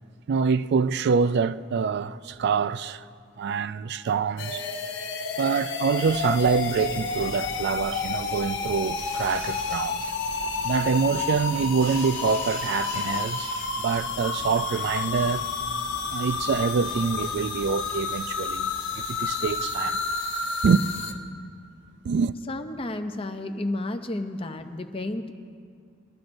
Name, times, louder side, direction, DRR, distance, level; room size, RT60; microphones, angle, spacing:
voice 1, 0.3-3.0 3.4-4.6 5.4-10.0 10.6-15.4 16.1-20.0 20.6-20.8 22.0-22.4, right 5 dB, 55° right, 0.3 m, -25 dB
sound 1, 4.4-21.1, left 5 dB, 60° left, 0.9 m, -30 dB
sound 2, 6.1-20.2, right 1 dB, 80° right, 1.8 m, -44 dB
voice 2, 22.5-25.3, left 2 dB, 25° left, 0.6 m, -32 dB
22.5 x 12.5 x 2.6 m
head